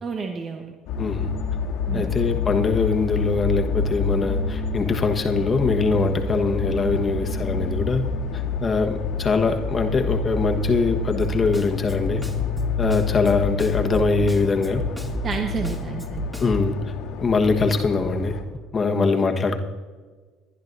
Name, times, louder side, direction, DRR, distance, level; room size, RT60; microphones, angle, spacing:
voice 1, 0.0-0.7 1.9-2.1 15.2-16.2 18.9-19.1, right 5 dB, 40° right, 4 dB, 1.1 m, -30 dB
sound 1, 0.9-18.4, left 4 dB, 75° left, 1.9 m, -28 dB
voice 2, 1.0-1.3 1.9-8.1 8.6-12.2 12.8-14.8 16.4-16.8 17.2-18.4 18.7-19.5, left 4 dB, 35° left, 4 dB, 1.3 m, -22 dB
Snare drum, 11.2-16.7, right 2 dB, 10° right, 2.0 m, -31 dB
22.0 x 11.0 x 2.7 m, 1.4 s
supercardioid pair, 80°, 0 cm